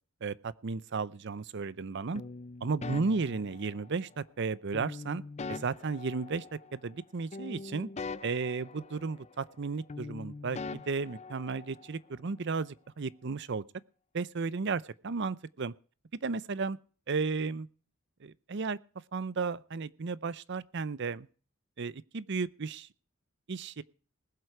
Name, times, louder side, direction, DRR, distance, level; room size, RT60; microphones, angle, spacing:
voice 1, 0.2-2.2 2.6-5.2 5.5-6.4 6.7-7.9 8.2-13.6 14.1-15.7 16.2-16.8 17.1-17.7 18.2-18.8 19.1-21.3 21.8-22.9 23.5-23.8, right 4 dB, 55° right, 0.6 m, -34 dB
sound 1, 2.2-4.1 4.7-7.0 7.3-9.6 9.9-12.0, left 3 dB, 35° left, 0.5 m, -43 dB
20.0 x 8.0 x 4.8 m
head